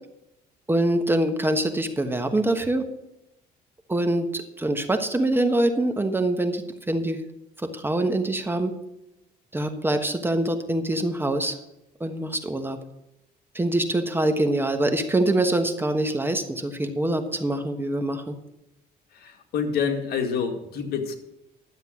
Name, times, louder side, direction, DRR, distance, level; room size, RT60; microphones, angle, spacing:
voice 1, 0.7-2.9 3.9-7.2 7.6-8.7 9.5-11.6 12.0-12.8 13.5-18.3, right 1 dB, 15° right, 7 dB, 1.2 m, -24 dB
voice 2, 19.1-21.2, left 6 dB, 65° left, 4 dB, 2.0 m, -27 dB
12.0 x 7.7 x 6.3 m, 0.89 s
cardioid pair, 110°, 17 cm